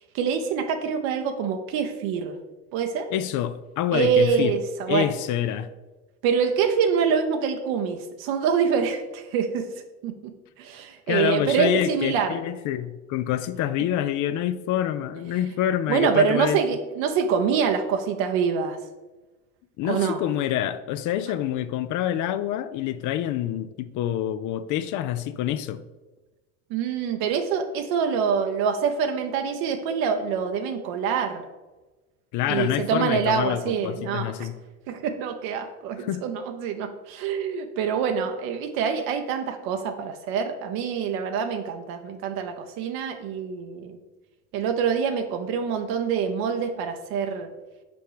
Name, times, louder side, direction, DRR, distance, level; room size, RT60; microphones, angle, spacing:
voice 1, 0.1-2.4 2.7-3.1 3.9-5.1 6.2-9.7 10.0-10.1 10.6-12.3 15.9-18.8 19.9-20.2 26.7-31.4 32.5-34.5 34.9-44.0 44.5-47.5, right 6 dB, 70° right, 0.7 m, -25 dB
voice 2, 3.1-4.5 4.9-5.7 11.1-16.6 19.8-25.8 32.3-34.6 36.0-36.2, left 11 dB, 55° left, 0.5 m, -27 dB
5.2 x 4.5 x 4.9 m
supercardioid pair, 85°, 37 cm